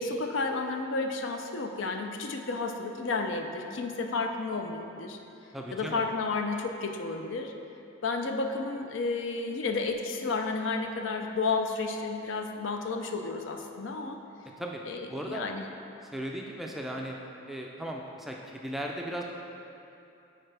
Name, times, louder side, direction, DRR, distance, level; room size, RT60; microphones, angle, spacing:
voice 1, 0.0-5.2 5.7-7.5 8.0-14.2 14.9-15.6, left 3 dB, 70° left, 4 dB, 0.5 m, -32 dB
voice 2, 5.5-6.1 14.6-14.8 15.1-15.5 16.0-17.2 17.5-19.2, right 1 dB, ahead, 0 dB, 0.3 m, -37 dB
8.8 x 4.5 x 3.3 m, 2.8 s
head